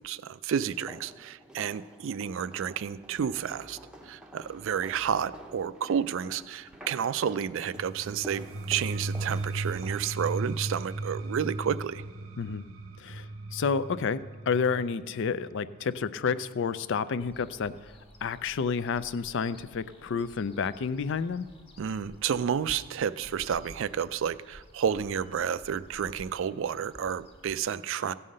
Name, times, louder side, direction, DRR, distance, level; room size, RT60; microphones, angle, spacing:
voice 1, 0.0-3.8 4.0-12.0 21.8-28.1, right 8 dB, 60° right, 15 dB, 0.3 m, -31 dB
sound 1, 0.6-10.2, equal, 5° right, 0.7 m, -49 dB
sound 2, 7.8-17.5, right 2 dB, 75° right, 0.7 m, -37 dB
voice 2, 13.0-17.9 18.2-21.5, left 5 dB, 55° left, 15 dB, 0.4 m, -30 dB
sound 3, 17.2-27.6, left 1 dB, 25° left, 1.4 m, -53 dB
15.5 x 5.6 x 6.4 m, 1.5 s
head